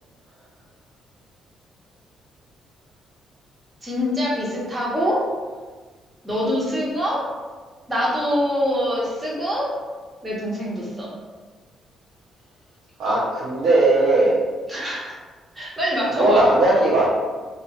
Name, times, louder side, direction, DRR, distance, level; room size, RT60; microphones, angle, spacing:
voice 1, 3.8-5.2 6.2-7.2 7.9-9.7 10.2-11.1 14.7-15.2 15.5-16.4, equal, 20° right, -6 dB, 1.4 m, -24 dB
voice 2, 13.0-14.4 16.2-17.1, right 2 dB, 85° right, -11 dB, 1.1 m, -18 dB
2.7 x 2.7 x 4.2 m, 1.4 s
cardioid pair, 90°, 0 cm